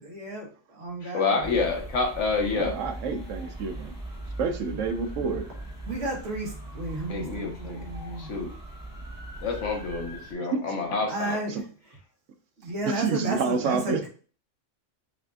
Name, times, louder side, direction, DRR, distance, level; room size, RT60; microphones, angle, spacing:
voice 1, 0.0-1.5 5.9-8.3 11.1-11.6 12.6-14.1, right 2 dB, 60° right, -1 dB, 1.5 m, -33 dB
voice 2, 1.0-2.8 7.1-7.8 8.2-8.5 9.4-11.4, left 4 dB, 75° left, 2 dB, 1.3 m, -28 dB
sound 1, 1.4-10.3, right 1 dB, 15° right, 1.3 m, -40 dB
voice 3, 2.5-3.9 4.4-5.5 10.5-11.0 11.5-11.6 12.8-14.1, right 5 dB, 85° right, 7 dB, 1.0 m, -29 dB
6.4 x 2.5 x 2.4 m, 0.40 s
omnidirectional pair, 1.3 m